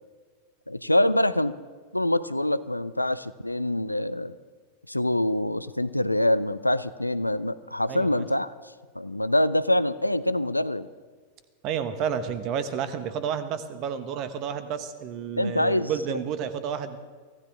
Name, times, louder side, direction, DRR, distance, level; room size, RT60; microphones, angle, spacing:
voice 1, 0.7-1.5 1.9-4.3 4.9-8.5 9.0-10.9 15.4-15.9, left 1 dB, 85° left, 15 dB, 0.5 m, -25 dB
voice 2, 7.9-8.2 11.6-17.0, right 7 dB, 40° right, 11 dB, 1.3 m, -31 dB
24.0 x 16.0 x 3.6 m, 1.5 s
figure-of-eight pair, 90°, 0 cm